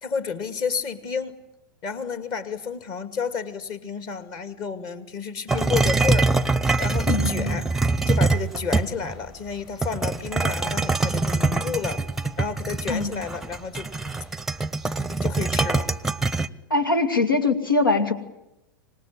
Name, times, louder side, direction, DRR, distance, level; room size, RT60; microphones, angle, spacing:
voice 1, 0.0-1.3 1.8-6.3 6.8-7.7 8.1-12.0 12.4-13.9 14.2-14.3 15.2-15.9, left 6 dB, 40° left, 11 dB, 2.3 m, -30 dB
sound 1, 5.5-9.2 9.8-16.5, right 3 dB, 5° right, 0.8 m, -24 dB
voice 2, 7.1-7.6 12.9-13.2 16.7-18.1, left 3 dB, 80° left, 10 dB, 2.4 m, -22 dB
25.5 x 19.5 x 10.0 m, 0.93 s
figure-of-eight pair, 95°, 11 cm